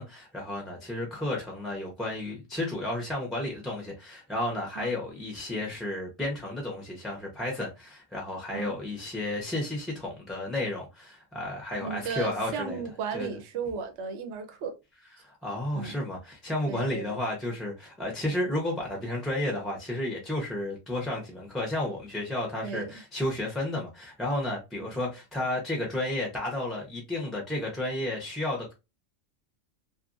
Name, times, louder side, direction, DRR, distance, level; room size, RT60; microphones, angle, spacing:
voice 1, 0.0-12.8 13.1-13.3 15.2-28.7, left 1 dB, ahead, 0.5 m, -32 dB
voice 2, 11.8-14.7 15.7-16.0 16.7-17.2 22.6-22.9 24.8-24.9, right 5 dB, 65° right, 0.9 m, -35 dB
2.7 x 2.5 x 2.5 m
omnidirectional pair, 1.3 m